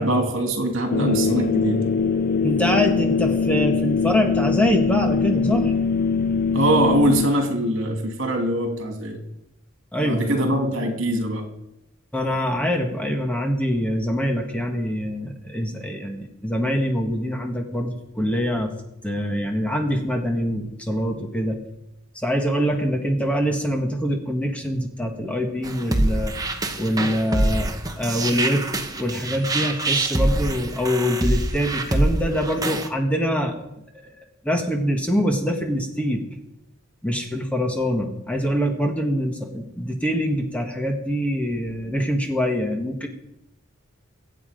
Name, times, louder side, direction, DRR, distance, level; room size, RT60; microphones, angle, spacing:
voice 1, 0.0-1.8 6.5-9.2 10.0-11.4, right 1 dB, 65° right, 4 dB, 2.7 m, -22 dB
sound 1, 0.9-7.3, left 5 dB, 45° left, 0.7 m, -22 dB
voice 2, 2.4-5.7 9.9-11.0 12.1-18.7 19.0-21.6 22.1-26.3 26.8-27.7 28.0-28.7 29.0-33.5 33.9-34.1 34.4-36.3 37.0-43.1, equal, 5° left, 3 dB, 1.4 m, -24 dB
sound 2, 25.6-32.9, right 2 dB, 15° right, 1.1 m, -24 dB
24.0 x 8.3 x 5.2 m, 0.85 s
head